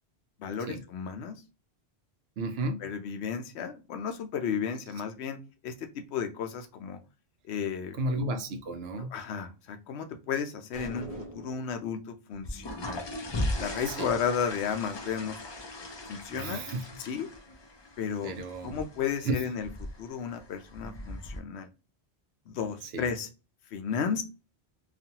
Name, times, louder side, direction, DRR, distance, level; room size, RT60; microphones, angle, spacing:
voice 1, 0.4-1.4 2.8-5.4 5.6-7.0 7.5-8.0 9.1-13.1 13.6-15.4 15.8-17.3 18.0-18.3 18.6-19.7 20.0-21.7 22.5-23.3 23.7-24.2, left 7 dB, 80° left, 0.8 m, -33 dB
voice 2, 2.4-2.8 7.9-9.1 13.9-14.1 16.3-16.8 18.2-18.8 19.3-19.4 22.8-23.1, right 2 dB, 70° right, 0.8 m, -33 dB
sound 1, 10.7-11.8, right 1 dB, 35° right, 0.8 m, -42 dB
sound 2, 12.3-21.4, left 1 dB, 45° left, 0.3 m, -38 dB
2.5 x 2.3 x 2.7 m
omnidirectional pair, 1.1 m